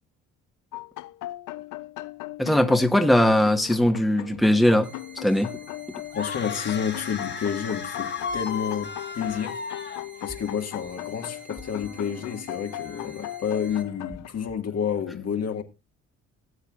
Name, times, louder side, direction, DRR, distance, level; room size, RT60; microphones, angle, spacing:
sound 1, 0.7-14.3, left 16 dB, 90° left, 0.6 m, -38 dB
voice 1, 2.4-5.5, left 1 dB, ahead, 1.3 m, -20 dB
sound 2, 4.8-13.8, right 4 dB, 25° right, 2.0 m, -49 dB
voice 2, 6.1-9.6 10.2-15.6, left 7 dB, 55° left, 1.9 m, -30 dB
sound 3, 6.1-10.5, left 5 dB, 35° left, 1.4 m, -35 dB
18.0 x 8.0 x 2.4 m
cardioid pair, 90°, 30 cm